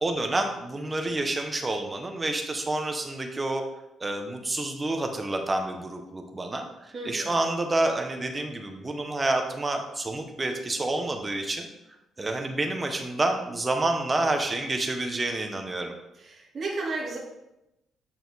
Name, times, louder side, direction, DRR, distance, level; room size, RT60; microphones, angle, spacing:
voice 1, 0.0-3.6 4.0-11.7 12.2-15.9, right 2 dB, 20° right, 4 dB, 0.9 m, -28 dB
voice 2, 6.9-7.3 16.1-17.2, right 3 dB, 40° right, -4 dB, 1.9 m, -33 dB
9.3 x 4.3 x 4.0 m, 0.90 s
cardioid pair, 115°, 0 cm